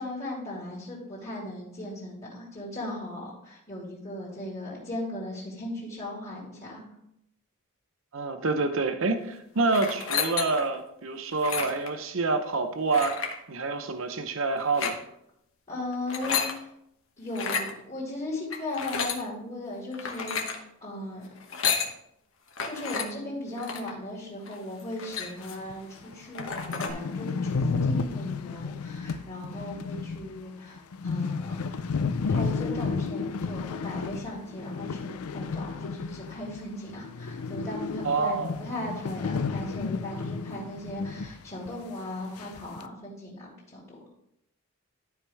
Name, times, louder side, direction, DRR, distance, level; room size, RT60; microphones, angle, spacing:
voice 1, 0.0-6.8 15.7-16.7 17.2-21.6 22.6-31.9 32.3-44.0, left 1 dB, 30° left, -6 dB, 2.2 m, -37 dB
voice 2, 8.1-15.0 38.0-38.6, right 3 dB, 60° right, 7 dB, 0.7 m, -27 dB
sound 1, 9.7-10.7 11.3-11.9 12.9-13.4 14.6-15.0 15.9-16.5 17.3-17.7 18.5-19.2 19.9-20.6 21.4-21.9 22.6-23.1 23.6-23.9 24.5-24.6 24.8-25.7 26.0-26.1 26.3-26.9, left 6 dB, 60° left, 1.1 m, -31 dB
sound 2, 25.7-25.8 26.1-26.2 26.4-36.6 36.9-41.4 41.6-41.7 42.4-42.8, left 4 dB, 85° left, 0.5 m, -32 dB
12.0 x 4.8 x 3.4 m, 0.76 s
head